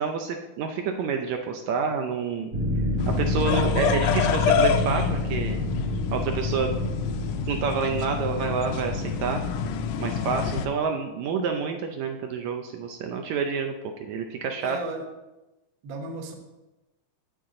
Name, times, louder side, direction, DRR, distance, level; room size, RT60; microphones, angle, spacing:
voice 1, 0.0-2.5 3.1-5.6 6.1-6.7 7.5-9.5 10.0-13.7 14.0-14.8, right 5 dB, 75° right, 4 dB, 1.8 m, -28 dB
sound 1, 2.5-9.9, left 1 dB, 40° right, 1.5 m, -29 dB
sound 2, 3.0-10.7, left 7 dB, 80° left, 1.6 m, -28 dB
voice 2, 3.5-3.9 14.6-15.0 15.8-16.3, right 2 dB, 60° right, 3 dB, 1.3 m, -34 dB
8.7 x 8.3 x 3.7 m, 1.0 s
omnidirectional pair, 3.5 m